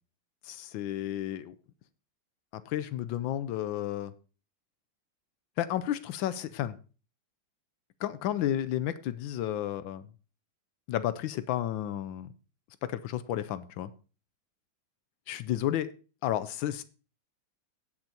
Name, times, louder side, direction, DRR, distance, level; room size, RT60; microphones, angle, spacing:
voice 1, 0.4-1.5 2.7-4.1 5.6-6.8 8.0-10.0 10.9-12.3 12.8-13.9 15.3-15.9 16.2-16.8, left 12 dB, 80° left, 14 dB, 1.4 m, -32 dB
17.0 x 7.1 x 2.8 m, 0.35 s
omnidirectional pair, 2.1 m